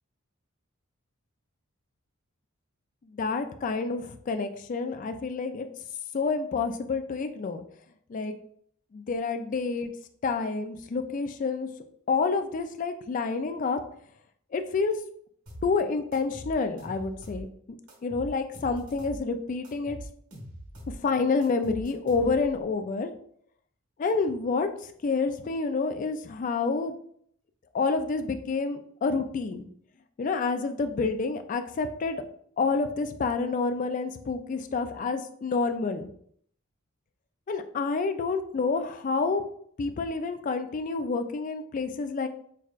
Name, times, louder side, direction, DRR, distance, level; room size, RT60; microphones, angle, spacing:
voice 1, 3.1-5.7 6.1-7.6 8.1-8.4 8.9-9.9 10.2-11.7 12.1-13.8 14.5-15.0 15.6-17.5 18.0-20.0 20.9-23.1 24.0-27.0 27.7-29.6 30.2-32.2 32.6-36.1 37.5-39.5 39.8-42.3, left 4 dB, 35° left, 8 dB, 0.3 m, -28 dB
sound 1, 15.5-15.7 16.1-17.5 17.9-19.2 19.6-21.0 21.4-22.6, right 1 dB, 85° right, 1.3 m, -42 dB
5.9 x 2.2 x 2.4 m, 0.64 s
head